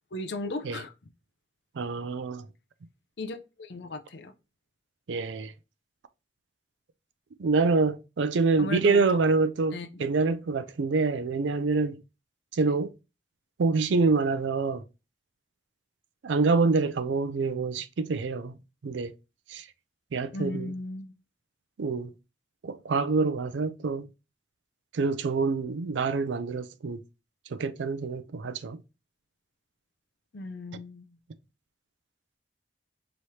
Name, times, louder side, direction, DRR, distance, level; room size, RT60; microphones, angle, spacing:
voice 1, 0.1-0.9 3.2-4.3 8.6-9.1 9.7-9.9 20.3-21.1 30.3-31.2, left 2 dB, 75° left, 0.6 m, -36 dB
voice 2, 1.8-2.5 5.1-5.5 7.4-12.0 12.5-12.9 13.6-14.8 16.2-18.6 18.8-19.1 19.5-19.7 20.1-20.7 21.8-22.1 22.6-24.1 24.9-27.0 27.5-28.8, right 4 dB, 90° right, 0.4 m, -26 dB
4.7 x 3.1 x 2.7 m
head